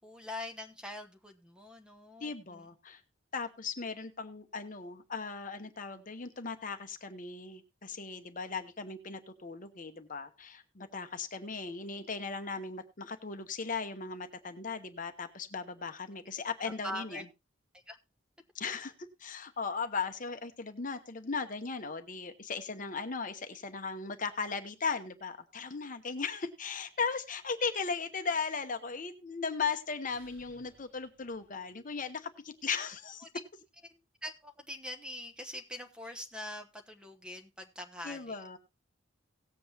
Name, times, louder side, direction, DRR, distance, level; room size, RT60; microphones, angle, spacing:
voice 1, 0.0-2.6 16.8-17.2 17.9-18.0 33.9-38.6, left 1 dB, 5° right, 5 dB, 1.0 m, -43 dB
voice 2, 2.2-3.0 3.3-17.2 18.5-18.9 19.2-33.3 38.0-38.6, left 5 dB, 40° left, 8 dB, 0.9 m, -37 dB
sound 1, 30.0-32.1, equal, 70° right, 6.2 m, -64 dB
18.0 x 7.7 x 2.8 m, 0.25 s
head